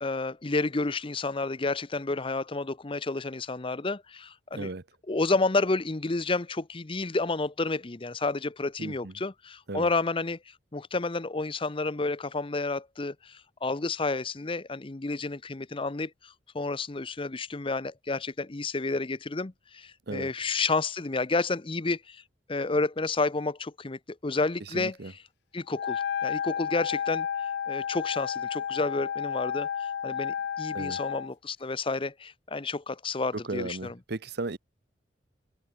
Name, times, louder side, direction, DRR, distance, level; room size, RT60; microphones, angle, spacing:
voice 1, 0.0-4.7 5.1-10.4 10.7-22.2 22.5-25.2 25.5-27.3 27.7-33.9, left 3 dB, 30° left, 0.7 m, -30 dB
voice 2, 4.5-4.8 8.8-9.1 9.7-9.9 20.1-20.3 24.7-25.1 30.7-31.0 33.4-34.6, right 2 dB, 60° right, 1.0 m, -35 dB
Wind instrument woodwind instrument, 25.7-31.3, left 8 dB, 60° left, 0.3 m, -32 dB
head